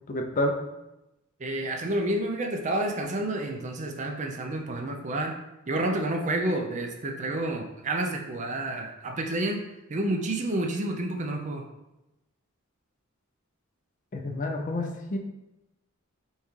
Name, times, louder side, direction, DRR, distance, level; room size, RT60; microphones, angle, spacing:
voice 1, 0.1-0.6 14.1-15.2, left 1 dB, 40° left, 3 dB, 0.4 m, -29 dB
voice 2, 1.4-5.4 5.7-9.6 9.9-11.7, right 1 dB, 35° right, 3 dB, 0.4 m, -29 dB
5.3 x 2.4 x 3.1 m, 0.94 s
head